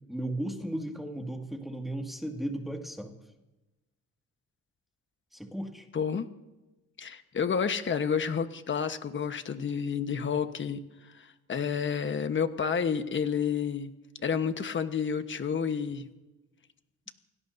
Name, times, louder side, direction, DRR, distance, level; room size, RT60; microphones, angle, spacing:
voice 1, 0.1-3.2 5.3-5.9, right 1 dB, ahead, 2 dB, 2.2 m, -35 dB
voice 2, 5.9-6.3 7.0-10.8 11.0-13.9 14.2-16.1, left 6 dB, 40° left, 9 dB, 1.3 m, -30 dB
29.5 x 17.5 x 2.7 m, 1.1 s
cardioid pair, 90°, 30 cm